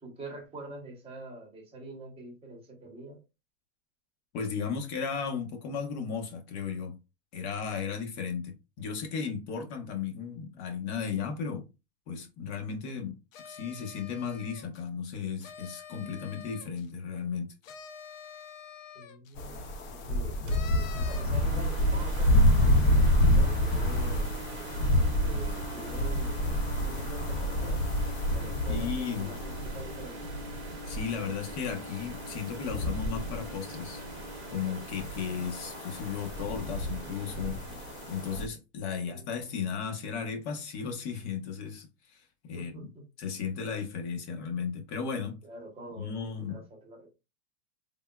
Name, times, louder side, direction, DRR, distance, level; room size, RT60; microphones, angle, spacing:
voice 1, 0.0-3.2 18.9-22.5 22.9-24.3 25.2-27.8 28.3-30.3 39.0-39.5 42.5-43.1 45.4-47.1, right 2 dB, 15° right, 0.9 m, -45 dB
voice 2, 4.3-7.0 7.3-11.7 12.1-13.1 13.4-17.5 28.7-29.3 30.9-34.0 34.5-37.6 38.1-42.9 43.2-45.4 46.0-46.6, left 6 dB, 55° left, 1.0 m, -35 dB
sound 1, 13.3-14.8 15.4-16.9 17.6-19.3 20.5-21.5, left 7 dB, 85° left, 0.6 m, -47 dB
sound 2, 19.4-38.5, left 1 dB, 40° left, 0.6 m, -29 dB
sound 3, 20.3-38.4, right 3 dB, 60° right, 0.8 m, -44 dB
3.5 x 2.2 x 2.2 m
supercardioid pair, 150°, 39 cm